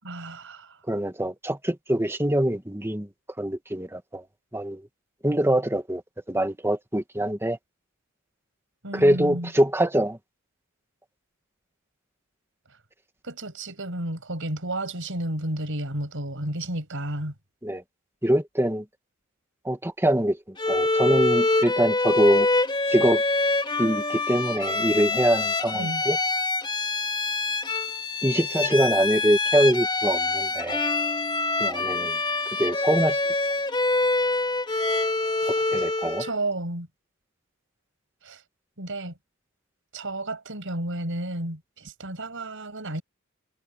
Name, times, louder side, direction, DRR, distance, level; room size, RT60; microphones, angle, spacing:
voice 1, 0.0-0.8 8.8-9.5 13.2-17.3 25.7-26.0 35.4-35.6 36.2-36.9 38.2-38.4 38.8-39.1 39.9-43.0, right 1 dB, 65° right, 7.2 m, -32 dB
voice 2, 0.9-3.1 3.4-4.2 4.5-4.8 5.2-6.0 6.3-7.6 8.9-10.2 17.6-17.8 18.2-18.8 19.7-20.4 20.7-22.5 22.9-23.2 23.8-26.2 28.2-30.8 31.6-32.2 32.6-33.2 35.5-36.3, right 1 dB, 10° right, 2.0 m, -24 dB
Bowed string instrument, 20.6-36.4, left 3 dB, 20° left, 2.9 m, -25 dB
head